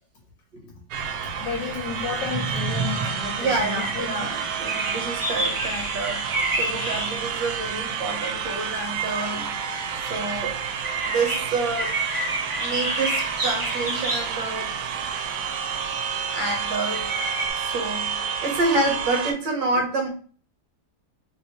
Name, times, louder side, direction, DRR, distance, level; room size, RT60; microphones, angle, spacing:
sound 1, 0.9-17.5, right 1 dB, 35° right, 0.5 m, -32 dB
sound 2, 0.9-19.3, right 7 dB, 90° right, 1.4 m, -30 dB
voice 1, 1.4-4.4, left 6 dB, 75° left, 1.3 m, -32 dB
voice 2, 3.4-9.5 10.0-10.6 11.1-12.0 12.6-14.8 16.3-17.1 17.6-20.1, right 2 dB, 70° right, 1.5 m, -28 dB
3.2 x 2.8 x 2.8 m
omnidirectional pair, 2.1 m